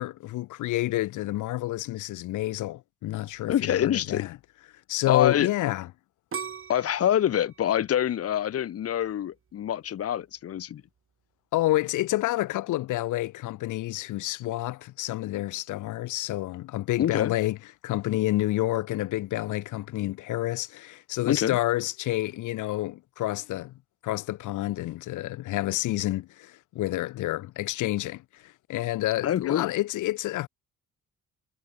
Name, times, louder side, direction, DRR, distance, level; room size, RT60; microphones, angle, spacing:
voice 1, 0.0-4.3 4.9-5.9 11.5-17.6 17.8-23.7 24.0-30.5, left 16 dB, 90° left, 1.6 m, -29 dB
voice 2, 3.5-4.3 5.1-5.5 6.7-10.8 17.0-17.3 21.2-21.6 29.2-29.7, left 10 dB, 50° left, 0.9 m, -25 dB
sound 1, 6.3-9.2 9.7-10.2, right 6 dB, 45° right, 5.5 m, -40 dB
cardioid pair, 90°, 30 cm